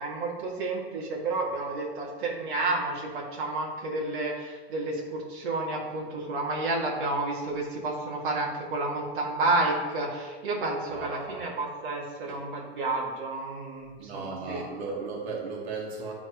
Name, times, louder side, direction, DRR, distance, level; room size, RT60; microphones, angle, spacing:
voice 1, 0.0-14.7, right 2 dB, 55° right, -3 dB, 1.8 m, -30 dB
voice 2, 10.9-11.4 12.3-12.4 14.0-16.1, right 4 dB, 85° right, -2 dB, 1.6 m, -36 dB
11.0 x 3.8 x 2.9 m, 1.3 s
supercardioid pair, 175°, 31 cm